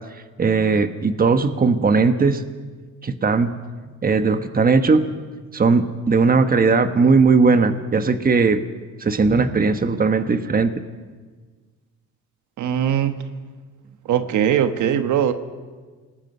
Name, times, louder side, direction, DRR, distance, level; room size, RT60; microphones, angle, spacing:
voice 1, 0.4-2.4 3.0-3.5 4.0-5.0 5.5-8.6 9.0-10.8, right 4 dB, 30° right, 9 dB, 1.3 m, -18 dB
voice 2, 12.6-13.1 14.1-15.3, right 9 dB, 75° right, 9 dB, 1.4 m, -20 dB
26.5 x 19.5 x 5.5 m, 1.4 s
cardioid pair, 90°, 30 cm